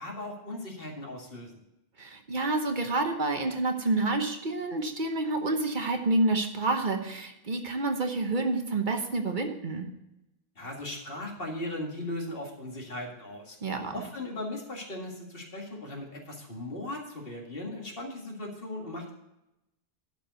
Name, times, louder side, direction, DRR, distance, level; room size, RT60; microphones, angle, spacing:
voice 1, 0.0-1.6 10.6-13.6 13.9-19.1, left 1 dB, 65° left, 0 dB, 2.2 m, -38 dB
voice 2, 2.0-9.9 13.6-14.0, right 2 dB, 50° right, 5 dB, 1.1 m, -28 dB
11.5 x 4.8 x 8.0 m, 0.90 s
omnidirectional pair, 1.0 m